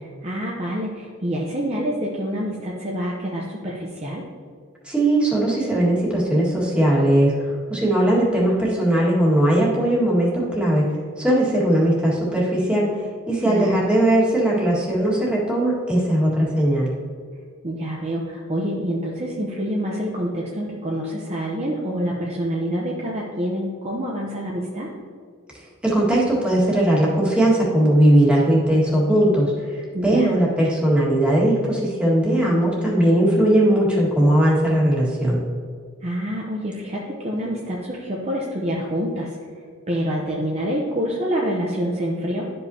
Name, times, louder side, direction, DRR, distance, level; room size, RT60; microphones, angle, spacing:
voice 1, 0.0-4.3 13.4-13.8 17.6-24.9 29.9-30.3 36.0-39.3 39.9-42.5, equal, 30° right, -2 dB, 0.7 m, -27 dB
voice 2, 4.8-10.9 11.2-12.9 13.3-16.9 25.8-35.4, right 1 dB, 5° right, -6 dB, 1.8 m, -19 dB
12.0 x 5.4 x 2.8 m, 2.1 s
head